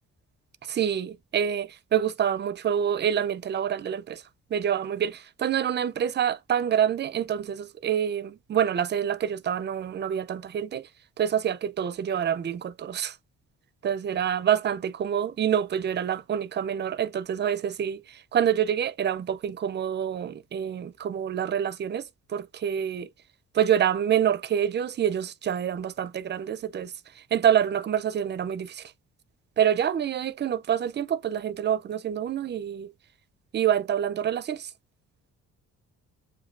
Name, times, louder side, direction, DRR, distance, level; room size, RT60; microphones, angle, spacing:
voice 1, 0.6-4.2 4.5-10.9 11.2-13.2 13.8-23.1 23.5-28.9 29.6-32.9 33.5-34.7, right 9 dB, 35° right, 0.5 m, -27 dB
7.2 x 2.6 x 2.4 m
cardioid pair, 130°, 30 cm